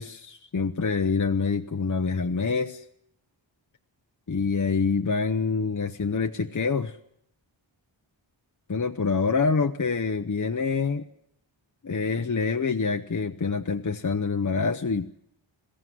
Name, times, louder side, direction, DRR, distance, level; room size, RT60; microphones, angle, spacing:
voice 1, 0.0-2.8 4.3-7.0 8.7-11.0 11.8-15.1, left 4 dB, 40° left, 6 dB, 0.9 m, -26 dB
22.0 x 15.5 x 9.4 m, 0.74 s
wide cardioid pair, 85°, 47 cm